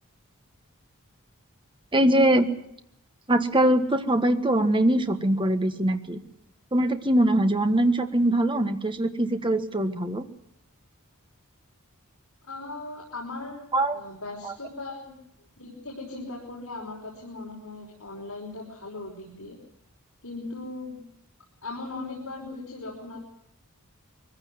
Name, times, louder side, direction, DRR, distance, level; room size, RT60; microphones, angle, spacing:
voice 1, 1.9-2.5 3.3-6.2 6.7-10.3 13.7-14.0 14.4-14.5, right 1 dB, 25° right, 7 dB, 1.6 m, -22 dB
voice 2, 12.4-13.7 13.9-19.6 20.2-21.0 21.6-23.2, left 2 dB, 70° left, -2 dB, 5.4 m, -38 dB
23.0 x 15.5 x 9.5 m, 0.79 s
head